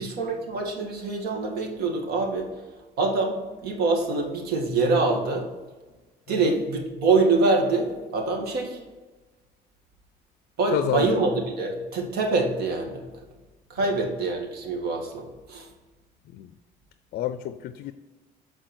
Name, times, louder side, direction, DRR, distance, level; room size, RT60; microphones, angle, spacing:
voice 1, 0.0-2.5 3.0-5.5 6.3-8.8 10.6-13.1 13.7-15.7, right 3 dB, 70° right, 2 dB, 1.8 m, -25 dB
voice 2, 10.7-11.2 16.3-16.5 17.1-17.9, left 12 dB, 65° left, 12 dB, 0.4 m, -30 dB
7.8 x 4.4 x 4.4 m, 1.2 s
cardioid pair, 110°, 17 cm